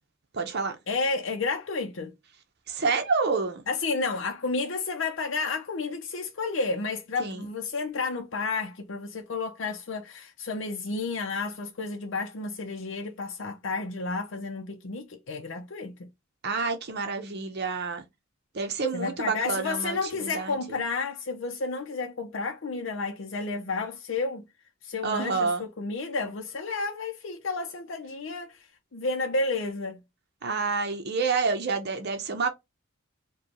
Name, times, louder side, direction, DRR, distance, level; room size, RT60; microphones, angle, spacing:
voice 1, 0.3-0.8 2.7-3.6 7.2-7.5 16.4-18.0 18.5-20.8 25.0-25.6 30.4-32.5, right 4 dB, 55° right, 0.8 m, -28 dB
voice 2, 0.9-2.1 3.7-16.1 18.9-24.4 24.8-28.6 28.9-30.0, left 3 dB, 65° left, 0.6 m, -31 dB
5.0 x 2.3 x 2.9 m
head